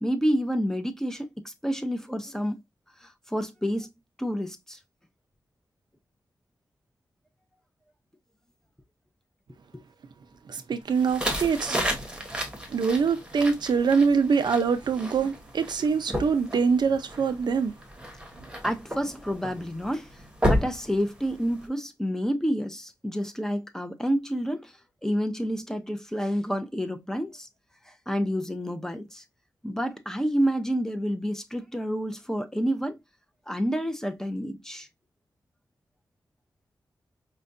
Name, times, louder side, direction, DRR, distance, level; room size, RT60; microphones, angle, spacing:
voice 1, 0.0-2.6 3.0-3.9 4.2-4.8 18.6-20.2 20.5-24.7 25.0-27.5 27.8-29.2 29.6-33.0 33.5-34.9, equal, 5° left, 0.6 m, -29 dB
voice 2, 10.5-11.8 12.7-17.7, right 5 dB, 75° right, 0.5 m, -24 dB
sound 1, 10.9-21.7, equal, 10° right, 1.1 m, -33 dB
5.0 x 2.2 x 2.6 m
wide cardioid pair, 90°, 8 cm